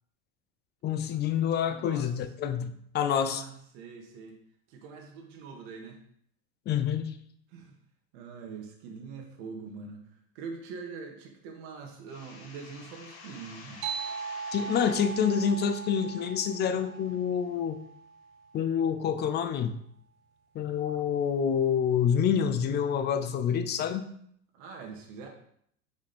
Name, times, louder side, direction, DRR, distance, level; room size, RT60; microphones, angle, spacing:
voice 1, 0.8-3.4 6.7-7.1 14.5-17.8 18.5-19.8 20.5-24.1, left 8 dB, 25° left, 10 dB, 0.5 m, -27 dB
voice 2, 1.6-2.1 3.1-4.4 4.7-6.0 7.5-7.7 8.1-10.0 10.3-14.1 24.5-25.3, right 5 dB, 55° right, 2 dB, 1.8 m, -43 dB
sound 1, 12.1-17.6, left 4 dB, 70° left, 1.9 m, -50 dB
sound 2, 13.8-18.8, right 5 dB, 90° right, 0.9 m, -39 dB
5.2 x 5.1 x 4.4 m, 0.67 s
supercardioid pair, 125°, 41 cm